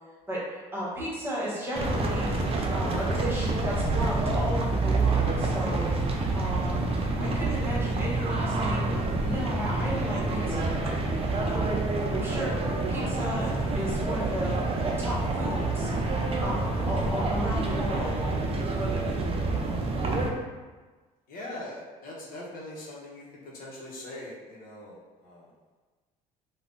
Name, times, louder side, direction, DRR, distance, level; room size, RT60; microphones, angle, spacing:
voice 1, 0.3-2.3 2.7-5.9 6.3-8.9 9.2-10.9 11.4-12.5 12.9-13.5 13.7-14.6 14.8-15.9 16.4-18.2, equal, 15° right, -7 dB, 1.3 m, -34 dB
sound 1, 1.7-20.3, right 2 dB, 35° right, 0.5 m, -27 dB
voice 2, 21.3-25.5, left 1 dB, 60° left, -5 dB, 0.9 m, -42 dB
3.3 x 2.3 x 2.5 m, 1.3 s
supercardioid pair, 70°, 17 cm